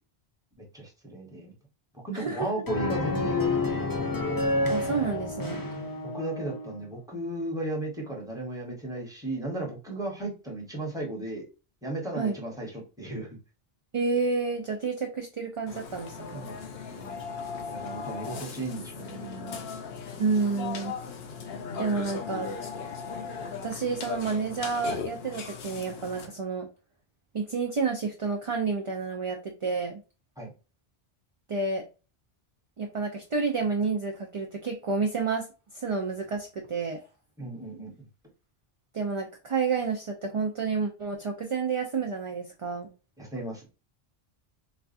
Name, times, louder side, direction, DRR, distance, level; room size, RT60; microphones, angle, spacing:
voice 1, 0.6-1.5 2.0-3.9 6.1-11.5 11.8-12.7 13.0-13.3 16.3-16.6 16.9-17.2 17.7-19.6 30.4-30.5 37.4-38.1 43.2-43.7, right 2 dB, 5° right, -1 dB, 1.0 m, -35 dB
voice 2, 2.1-2.5 4.7-5.6 12.2-12.3 13.9-16.4 20.2-20.9 21.8-22.5 23.6-26.7 27.3-30.0 31.5-31.8 32.8-35.5 35.7-37.0 38.9-42.9, right 4 dB, 45° right, 2 dB, 0.5 m, -29 dB
sound 1, 2.7-6.8, left 2 dB, 25° left, 0.5 m, -29 dB
Burping eructation, 15.7-26.3, left 5 dB, 80° left, 0.9 m, -38 dB
4.1 x 2.3 x 2.5 m, 0.32 s
omnidirectional pair, 1.0 m